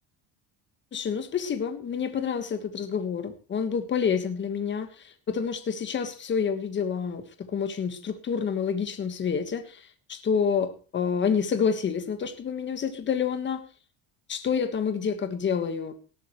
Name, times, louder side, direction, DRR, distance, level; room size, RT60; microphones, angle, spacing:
voice 1, 0.9-9.8 10.1-13.6 14.3-15.9, left 6 dB, 20° left, 9 dB, 1.5 m, -28 dB
18.5 x 12.5 x 3.2 m, 0.35 s
cardioid pair, 180°, 49 cm